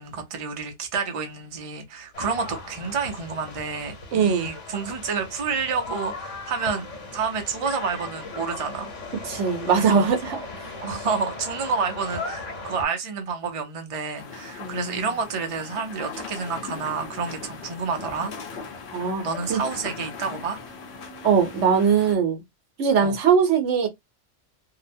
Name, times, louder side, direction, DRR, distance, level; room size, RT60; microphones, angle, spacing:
voice 1, 0.0-6.9 7.1-8.9 9.8-10.5 10.8-18.3 19.2-20.6 23.0-23.2, right 5 dB, 35° right, 0.6 m, -29 dB
sound 1, 2.1-12.9, left 3 dB, 80° left, 1.3 m, -37 dB
voice 2, 4.1-4.5 9.3-10.4 14.6-15.1 18.9-19.2 19.5-19.6 21.2-22.4 22.8-23.9, right 6 dB, 75° right, 1.0 m, -21 dB
sound 2, 14.1-22.2, left 4 dB, 65° left, 1.0 m, -39 dB
2.7 x 2.1 x 2.6 m
omnidirectional pair, 1.2 m